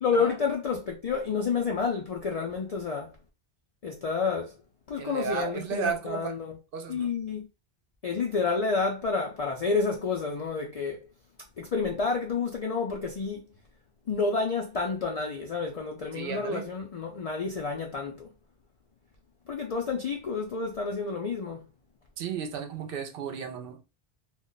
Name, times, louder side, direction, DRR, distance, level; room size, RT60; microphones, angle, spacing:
voice 1, 0.0-3.1 3.8-4.5 4.9-6.5 6.9-7.5 8.0-11.0 11.6-13.5 14.1-18.3 19.5-21.6, left 4 dB, 55° left, 0.4 m, -29 dB
voice 2, 5.0-6.3 6.7-7.1 16.1-16.7 22.2-23.8, right 7 dB, 65° right, 0.7 m, -34 dB
2.3 x 2.1 x 3.8 m
omnidirectional pair, 1.1 m